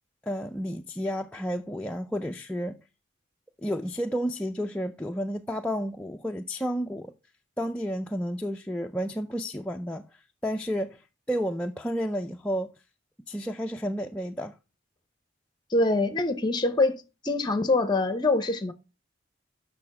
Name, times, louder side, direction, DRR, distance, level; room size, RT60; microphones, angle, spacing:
voice 1, 0.2-2.8 3.6-7.1 7.6-12.7 13.3-14.6, equal, 5° left, 0.3 m, -31 dB
voice 2, 15.7-18.7, left 2 dB, 20° left, 0.7 m, -24 dB
6.9 x 6.1 x 5.8 m
head